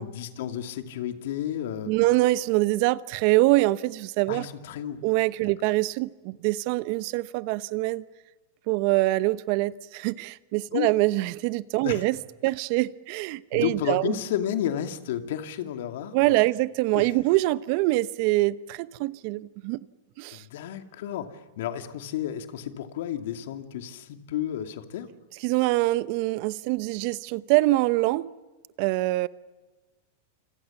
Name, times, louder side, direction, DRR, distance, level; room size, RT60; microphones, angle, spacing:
voice 1, 0.0-1.9 4.3-5.0 5.4-5.5 10.7-10.9 11.8-12.0 13.5-16.4 16.9-17.1 20.3-25.1, left 10 dB, 70° left, 2.4 m, -32 dB
voice 2, 1.9-4.5 5.0-8.0 8.7-12.2 12.4-14.1 16.1-19.8 20.2-20.4 25.4-28.3 28.8-29.3, right 19 dB, 55° right, 0.9 m, -24 dB
28.0 x 25.5 x 7.2 m
hypercardioid pair, 110°, 0 cm